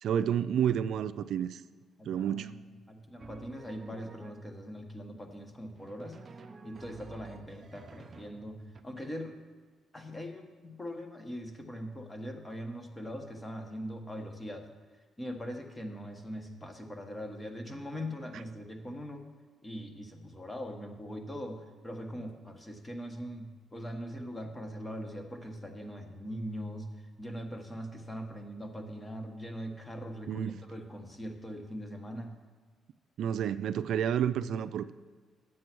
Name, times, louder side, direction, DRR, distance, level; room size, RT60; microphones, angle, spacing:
voice 1, 0.0-1.6 2.0-2.6 30.3-30.6 33.2-34.9, right 9 dB, 70° right, 13 dB, 0.4 m, -30 dB
voice 2, 2.0-2.6 2.9-6.2 6.6-9.4 9.9-19.3 19.6-32.4, equal, 20° left, 4 dB, 1.5 m, -41 dB
Drum, 3.2-4.7 5.7-8.8, right 4 dB, 40° right, 0.7 m, -51 dB
9.4 x 7.6 x 6.1 m, 1.5 s
cardioid pair, 90°, 0 cm